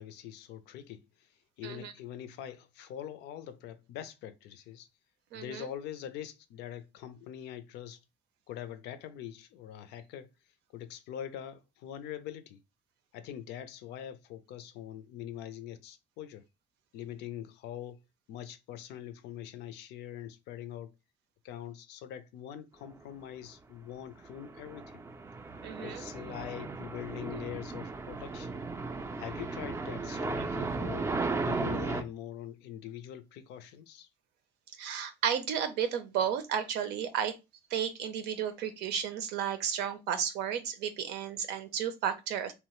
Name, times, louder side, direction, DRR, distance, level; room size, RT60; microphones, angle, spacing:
voice 1, 0.0-4.9 5.3-8.0 8.5-10.3 10.7-12.6 13.1-16.5 16.9-18.0 18.3-20.9 21.4-25.0 25.8-28.6 29.2-34.1, left 10 dB, 80° left, 0.4 m, -43 dB
voice 2, 5.3-5.7 25.6-26.0 30.4-30.5 34.8-37.4 37.7-42.5, right 8 dB, 90° right, 0.6 m, -33 dB
sound 1, 24.2-32.0, right 3 dB, 15° right, 0.3 m, -36 dB
2.9 x 2.0 x 2.9 m
cardioid pair, 110°, 17 cm